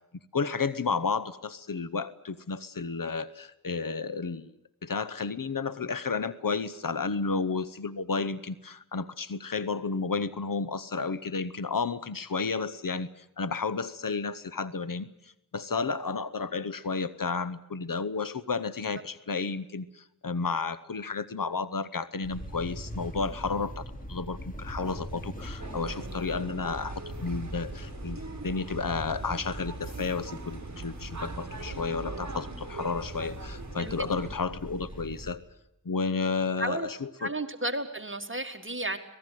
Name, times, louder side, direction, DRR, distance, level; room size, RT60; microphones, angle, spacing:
voice 1, 0.3-4.5 4.8-15.1 15.5-35.4 35.8-37.3, left 4 dB, 85° left, 15 dB, 0.9 m, -32 dB
sound 1, 22.2-35.3, equal, 25° left, 4.1 m, -42 dB
sound 2, 25.6-34.4, right 3 dB, 55° right, 1.6 m, -41 dB
voice 2, 37.2-39.0, right 1 dB, 40° right, 7 dB, 1.9 m, -32 dB
25.5 x 18.5 x 9.3 m, 0.82 s
wide cardioid pair, 40°, 33 cm